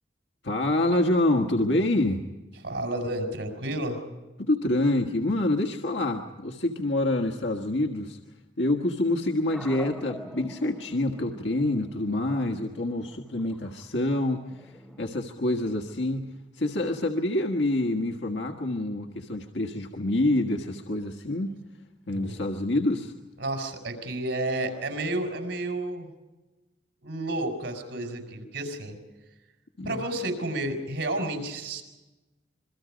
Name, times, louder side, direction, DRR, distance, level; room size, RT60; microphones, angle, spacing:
voice 1, 0.4-2.2 4.4-8.2 8.6-21.6 22.1-23.1 29.8-30.0, left 1 dB, 80° left, 2 dB, 1.6 m, -27 dB
voice 2, 2.6-4.0 22.1-22.3 23.4-26.1 27.0-29.0 29.8-31.8, right 1 dB, 90° right, 5 dB, 5.8 m, -31 dB
sound 1, 9.5-15.1, equal, ahead, 2.7 m, -46 dB
27.0 x 23.0 x 5.2 m, 1.1 s
head